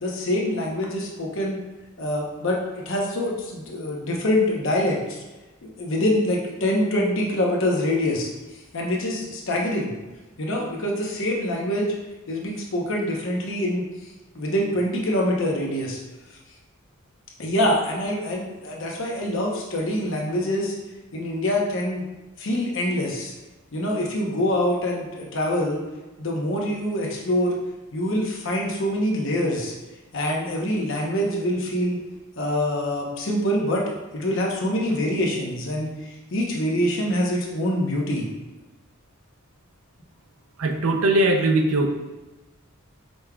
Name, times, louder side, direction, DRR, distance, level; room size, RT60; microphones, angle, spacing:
voice 1, 0.0-1.6 2.0-5.2 5.6-8.3 8.7-9.9 10.4-11.9 12.3-13.8 14.3-16.0 17.4-20.7 21.1-22.0 22.4-23.3 23.7-25.8 26.2-27.6 27.9-29.7 30.1-32.0 32.4-38.3, left 1 dB, 60° left, -1 dB, 0.9 m, -25 dB
voice 2, 40.6-41.9, right 2 dB, 70° right, 4 dB, 0.5 m, -20 dB
5.2 x 3.5 x 2.3 m, 1.2 s
head